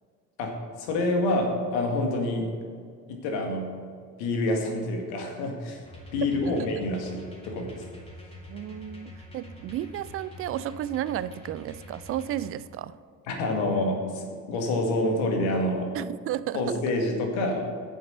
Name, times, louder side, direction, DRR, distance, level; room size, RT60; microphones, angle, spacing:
voice 1, 0.4-2.5 3.1-3.7 4.2-5.8 6.1-7.8 13.3-15.9 16.5-17.7, left 2 dB, 65° left, 2 dB, 2.0 m, -27 dB
sound 1, 5.8-12.5, left 1 dB, 10° left, 2.8 m, -46 dB
voice 2, 8.5-13.0 15.9-16.8, right 12 dB, 30° right, 16 dB, 0.4 m, -33 dB
8.9 x 7.4 x 6.6 m, 2.1 s
figure-of-eight pair, 55°, 49 cm